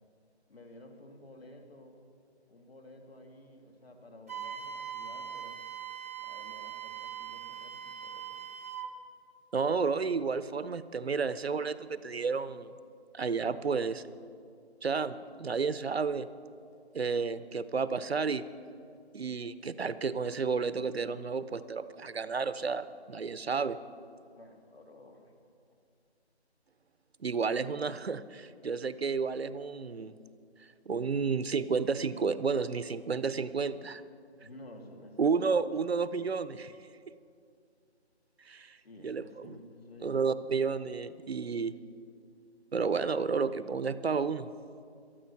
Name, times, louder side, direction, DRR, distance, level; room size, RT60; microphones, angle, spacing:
voice 1, 0.5-2.0 2.5-5.6 6.2-8.5 24.3-25.4 34.4-35.5 38.8-40.2, left 1 dB, 60° left, 3 dB, 2.6 m, -53 dB
Wind instrument woodwind instrument, 4.3-8.9, right 8 dB, 15° right, 0.7 m, -41 dB
voice 2, 9.5-12.7 13.1-14.0 14.8-16.3 16.9-18.4 19.1-23.8 27.2-30.2 30.9-34.0 35.2-36.7 37.1-37.2 38.4-38.8 39.0-39.5 40.0-41.7 42.7-44.5, right 5 dB, 65° right, 15 dB, 0.7 m, -31 dB
18.5 x 13.0 x 5.8 m, 2.4 s
figure-of-eight pair, 165°, 33 cm